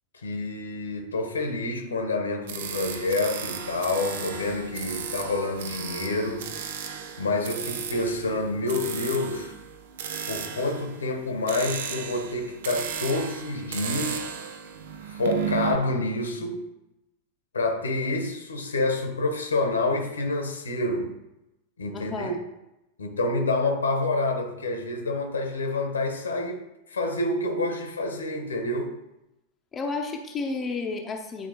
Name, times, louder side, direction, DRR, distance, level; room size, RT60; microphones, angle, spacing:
voice 1, 0.2-6.5 7.2-9.5 10.3-14.2 15.1-16.6 17.5-21.1 21.8-22.3 23.0-26.6 26.9-29.0, left 2 dB, 75° left, 4 dB, 1.3 m, -28 dB
sound 1, 2.5-15.8, right 7 dB, 55° right, 0.7 m, -35 dB
voice 2, 21.9-22.4 29.7-31.5, left 3 dB, 20° left, 2 dB, 0.9 m, -31 dB
10.0 x 4.4 x 3.0 m, 0.90 s
figure-of-eight pair, 90°, 0 cm